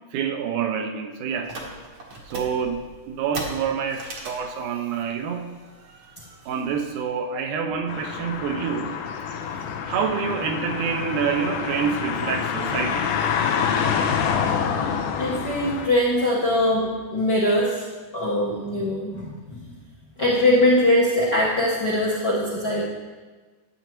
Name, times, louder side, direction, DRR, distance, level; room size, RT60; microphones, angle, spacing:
voice 1, 0.1-1.5 2.3-5.5 5.8-9.0 9.3-9.4 9.9-13.1, right 6 dB, 80° right, 5 dB, 2.0 m, -27 dB
sound 1, 1.4-7.0, right 2 dB, 60° right, 1.3 m, -39 dB
sound 2, 7.9-15.9, left 7 dB, 85° left, 2.1 m, -26 dB
voice 2, 15.2-16.8 17.1-17.8 18.1-19.6 20.2-22.9, left 1 dB, 60° left, -7 dB, 1.1 m, -21 dB
11.0 x 7.9 x 3.0 m, 1.3 s
omnidirectional pair, 3.7 m